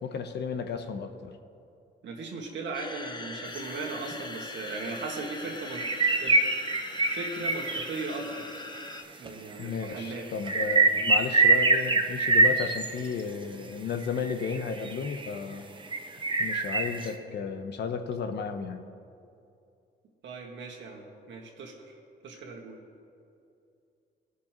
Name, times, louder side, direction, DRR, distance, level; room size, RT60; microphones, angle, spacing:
voice 1, 0.0-1.4 9.6-15.7 16.4-18.9, left 6 dB, 60° left, 8 dB, 0.8 m, -33 dB
voice 2, 2.0-5.9 6.2-6.5 7.1-8.5 9.2-10.6 20.2-22.0 22.2-22.8, right 3 dB, 65° right, -1 dB, 1.8 m, -38 dB
sound 1, 2.7-9.0, left 3 dB, 20° left, 0.7 m, -41 dB
sound 2, 3.5-3.6 4.1-4.2 4.8-4.9 5.2-5.4 5.6-8.4 9.3-9.4 9.6-13.2 13.9-15.4 15.9-17.1, right 3 dB, 25° right, 0.8 m, -25 dB
18.5 x 6.4 x 3.0 m, 2.5 s
cardioid pair, 90°, 20 cm